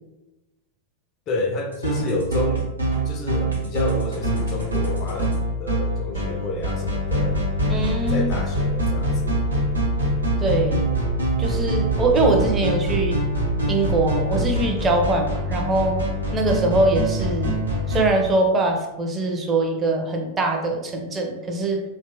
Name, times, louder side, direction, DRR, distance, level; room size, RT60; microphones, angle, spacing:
voice 1, 1.3-2.7 3.1-7.4 8.1-9.5, left 2 dB, 35° left, 2 dB, 0.4 m, -29 dB
sound 1, 1.7-18.1, right 1 dB, 80° right, 0.8 m, -24 dB
voice 2, 7.7-8.3 10.4-10.9 11.4-13.2 13.7-16.0 16.3-17.6 17.9-21.8, right 2 dB, 20° right, 2 dB, 0.5 m, -22 dB
2.7 x 2.2 x 2.7 m, 1.0 s
figure-of-eight pair, 90°, 0 cm